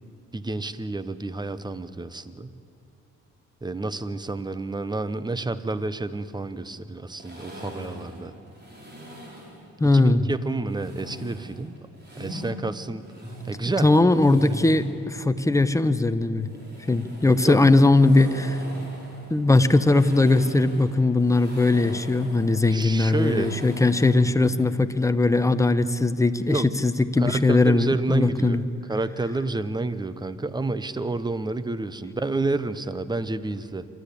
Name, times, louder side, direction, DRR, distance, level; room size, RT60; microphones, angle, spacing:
voice 1, 0.3-2.5 3.6-8.3 9.9-11.7 12.2-13.1 13.5-13.9 17.4-17.6 22.7-23.5 26.5-26.7 27.2-28.6 28.9-33.9, right 2 dB, 15° right, 14 dB, 0.9 m, -29 dB
sound 1, 7.2-9.6 10.7-12.5 13.0-15.0 16.4-24.3, equal, 35° right, 5.8 m, -40 dB
voice 2, 9.8-10.2 13.8-16.5 16.9-18.6 19.3-28.6, left 2 dB, 10° left, 10 dB, 0.9 m, -20 dB
27.0 x 12.5 x 8.6 m, 2.9 s
cardioid pair, 90°, 30 cm